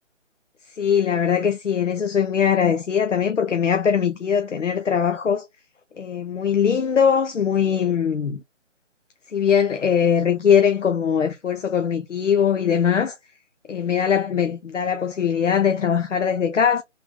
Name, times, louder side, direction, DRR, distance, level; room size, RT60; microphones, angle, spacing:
voice 1, 0.8-5.4 6.0-8.4 9.3-13.2 13.7-16.8, left 7 dB, 70° left, 0.6 m, -21 dB
3.3 x 2.1 x 3.6 m
figure-of-eight pair, 150°, 38 cm